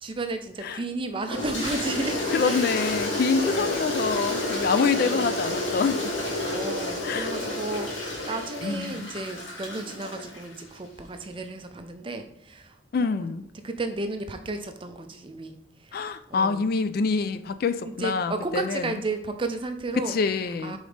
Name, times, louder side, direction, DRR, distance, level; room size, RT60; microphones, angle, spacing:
voice 1, 0.0-2.2 2.4-2.7 3.4-3.9 4.9-5.4 6.5-12.7 13.0-13.2 13.6-15.6 16.3-16.6 17.8-20.1 20.6-20.8, right 3 dB, 25° right, 7 dB, 0.4 m, -33 dB
Toilet flush, 1.3-10.6, left 1 dB, 75° left, 1.6 m, -30 dB
voice 2, 2.3-6.0 7.0-7.3 8.6-9.1 12.9-13.4 15.9-19.0 20.0-20.8, left 5 dB, 50° left, 12 dB, 0.3 m, -26 dB
5.2 x 3.9 x 5.0 m, 0.73 s
head